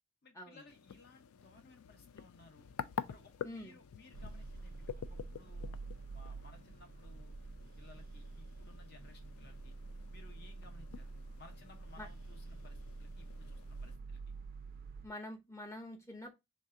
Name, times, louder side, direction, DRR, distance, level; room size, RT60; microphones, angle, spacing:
voice 1, 0.2-2.7 3.1-5.8 6.1-7.3 7.8-9.7 10.1-14.3, left 3 dB, 50° left, 0.8 m, -60 dB
sound 1, 0.7-14.0, left 7 dB, 80° left, 0.3 m, -49 dB
voice 2, 3.4-3.7 12.0-12.1 15.0-16.3, left 1 dB, 15° left, 0.7 m, -46 dB
sound 2, 4.1-15.1, right 3 dB, 40° right, 0.3 m, -48 dB
3.3 x 2.7 x 3.6 m
head